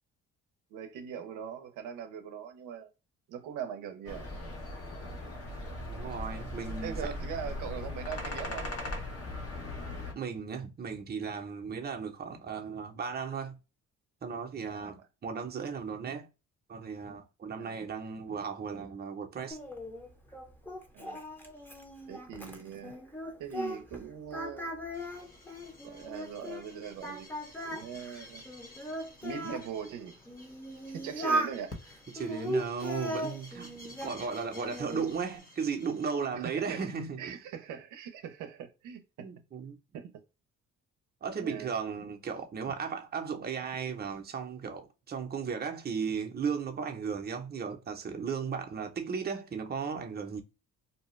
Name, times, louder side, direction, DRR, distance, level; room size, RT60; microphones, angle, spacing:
voice 1, 0.7-2.9 3.3-4.3 6.8-8.6 14.7-15.0 17.6-17.8 20.9-21.2 22.1-22.9 23.4-24.8 25.8-27.3 27.6-28.4 29.2-30.2 30.9-31.8 36.3-36.9 37.2-39.3 39.9-40.1 41.4-41.7, right 8 dB, 90° right, 0.6 m, -41 dB
sound 1, 4.0-10.1, left 1 dB, 50° left, 1.0 m, -38 dB
voice 2, 5.9-7.1 10.1-13.5 14.2-16.3 16.7-19.6 32.1-37.4 39.2-39.8 41.2-50.4, right 6 dB, 30° right, 0.7 m, -36 dB
Singing, 19.5-24.0 24.3-26.7 27.0-29.7 30.3-31.6 32.2-34.2 34.5-35.1, right 1 dB, 5° left, 0.7 m, -37 dB
sound 2, 24.9-36.3, left 1 dB, 30° left, 1.1 m, -53 dB
2.7 x 2.2 x 3.1 m
cardioid pair, 90°, 30 cm